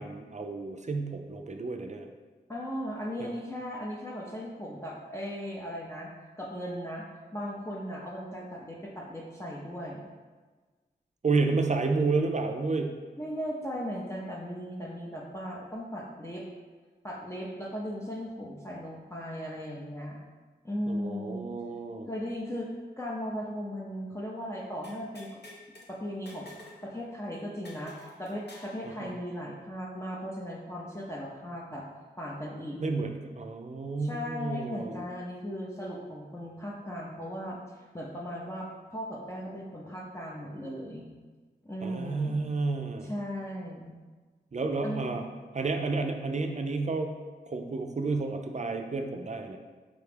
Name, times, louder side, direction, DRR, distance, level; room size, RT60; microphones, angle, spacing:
voice 1, 0.0-2.1 3.2-3.3 11.2-12.9 20.9-22.1 29.0-29.1 32.8-35.0 41.8-43.1 44.5-45.2 45.5-47.2 47.5-49.6, right 3 dB, 40° right, 4 dB, 0.4 m, -31 dB
voice 2, 2.5-6.1 6.4-7.0 7.3-10.0 13.2-16.4 17.0-20.2 20.6-21.5 22.1-25.4 25.9-26.5 26.8-31.8 32.2-32.8 34.0-41.1 41.6-42.4 43.0-43.9 44.8-45.2, equal, 15° left, -5 dB, 0.6 m, -37 dB
sound 1, 24.8-25.9 26.3-26.8 27.1-27.2 27.6-28.8, left 1 dB, 65° left, 0.8 m, -49 dB
5.0 x 2.3 x 3.3 m, 1.4 s
cardioid pair, 40°, 18 cm